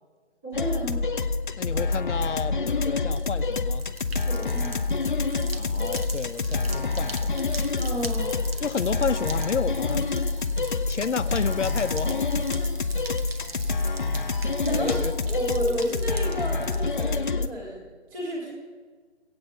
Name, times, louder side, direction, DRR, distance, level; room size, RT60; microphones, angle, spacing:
voice 1, 0.4-1.1 4.2-4.8 7.8-8.4 14.6-15.0 15.2-18.5, equal, 10° right, -5 dB, 1.8 m, -31 dB
sound 1, 0.5-17.5, left 3 dB, 45° left, 0.7 m, -27 dB
voice 2, 1.6-3.8 5.5-7.3 8.6-10.1 10.9-12.3 14.7-15.1, left 6 dB, 85° left, 13 dB, 0.8 m, -30 dB
sound 2, 3.0-17.2, right 4 dB, 55° right, 1.4 m, -42 dB
sound 3, 6.4-15.5, left 2 dB, 25° left, 1.7 m, -49 dB
15.0 x 8.7 x 8.1 m, 1.5 s
figure-of-eight pair, 170°, 35 cm